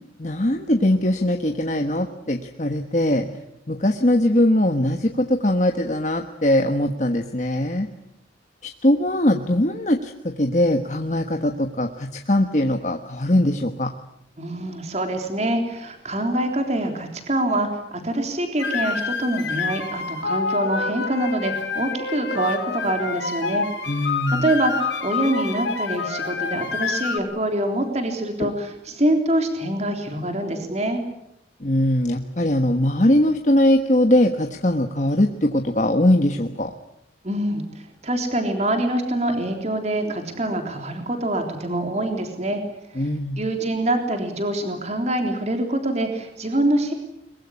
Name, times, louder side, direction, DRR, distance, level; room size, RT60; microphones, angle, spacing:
voice 1, 0.2-3.3 3.7-7.9 8.6-13.9 23.9-24.4 28.4-28.5 31.6-36.7 43.0-43.4, left 1 dB, 40° left, 5 dB, 1.4 m, -21 dB
voice 2, 14.4-23.7 24.3-31.0 37.2-37.6 38.0-42.6 43.0-43.1 43.4-46.9, right 1 dB, 35° right, 4 dB, 3.6 m, -25 dB
sound 1, 18.6-27.2, left 5 dB, 65° left, 3.1 m, -27 dB
23.0 x 22.5 x 9.9 m, 0.81 s
head